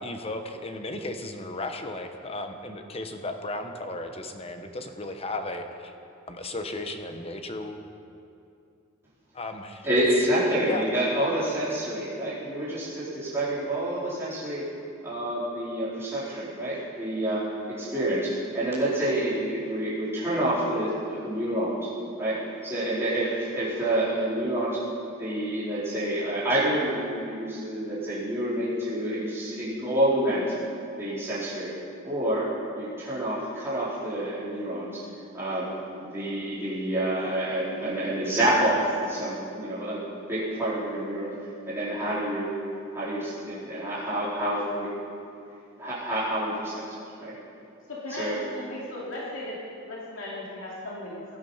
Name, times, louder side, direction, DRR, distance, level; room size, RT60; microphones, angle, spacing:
voice 1, 0.0-5.9 6.3-7.8 9.3-10.1 10.6-10.8, left 2 dB, 30° left, 6 dB, 1.1 m, -35 dB
voice 2, 9.8-14.7 15.0-21.9 22.2-24.8 25.2-30.5 31.0-31.7 32.0-35.0 35.3-35.7 36.0-41.3 41.6-42.6 42.9-44.9 45.8-46.8 47.2-47.3 48.1-48.4, right 1 dB, 10° right, -11 dB, 4.2 m, -28 dB
voice 3, 47.9-49.6 49.8-51.4, left 1 dB, 70° left, -5 dB, 2.8 m, -36 dB
18.5 x 12.5 x 5.7 m, 2.6 s
head